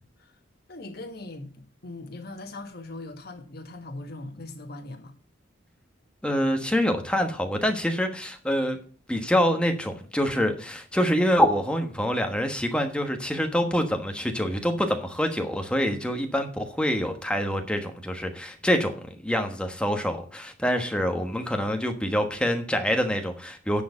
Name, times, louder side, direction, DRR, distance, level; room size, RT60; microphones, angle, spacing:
voice 1, 0.7-5.1, left 2 dB, 55° left, 1.6 m, -40 dB
voice 2, 6.2-8.8 9.1-18.9 19.2-23.8, equal, 5° left, 1.2 m, -26 dB
10.0 x 4.7 x 7.2 m
head